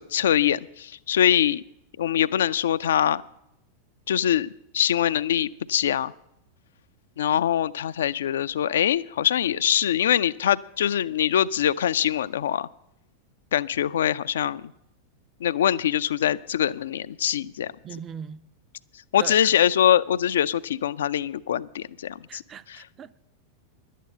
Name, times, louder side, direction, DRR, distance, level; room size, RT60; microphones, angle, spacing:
voice 1, 0.0-1.6 2.0-3.2 4.1-6.1 7.2-12.7 13.5-14.7 15.4-17.7 19.1-22.4 22.7-22.8, left 10 dB, 60° left, 0.4 m, -23 dB
voice 2, 17.8-18.5 19.2-19.6 22.3-23.2, right 8 dB, 25° right, 0.5 m, -39 dB
11.5 x 9.3 x 7.7 m
figure-of-eight pair, 90°, 0 cm